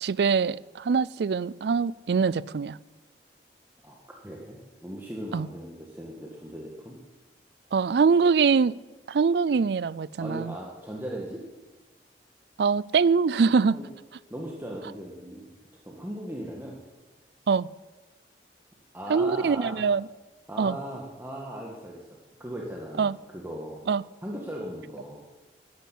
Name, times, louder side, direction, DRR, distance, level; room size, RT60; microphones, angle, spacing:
voice 1, 0.0-2.8 5.3-5.5 7.7-8.7 9.1-10.5 12.6-13.8 17.5-17.7 19.1-20.1 20.6-20.8 23.0-23.2 23.9-24.0, right 5 dB, 65° right, 0.4 m, -23 dB
voice 2, 4.2-7.0 10.2-11.4 13.7-13.9 14.3-15.5 15.9-16.8 18.9-19.8 20.5-23.8 24.2-25.2, right 1 dB, 10° right, 1.7 m, -38 dB
13.5 x 10.5 x 8.4 m
head